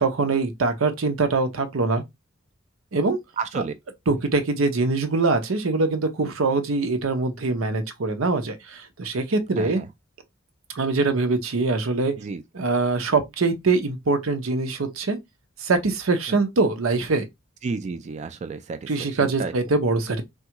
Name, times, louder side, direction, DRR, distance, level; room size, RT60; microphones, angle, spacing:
voice 1, 0.0-2.0 2.9-3.2 4.1-9.8 10.7-12.1 12.5-15.2 15.6-17.3 18.9-20.2, right 3 dB, 90° right, 0.7 m, -23 dB
voice 2, 3.4-3.7 9.6-9.9 12.2-12.4 16.3-16.4 17.6-18.9 19.2-19.5, right 4 dB, 35° right, 0.3 m, -31 dB
3.4 x 2.3 x 2.9 m
head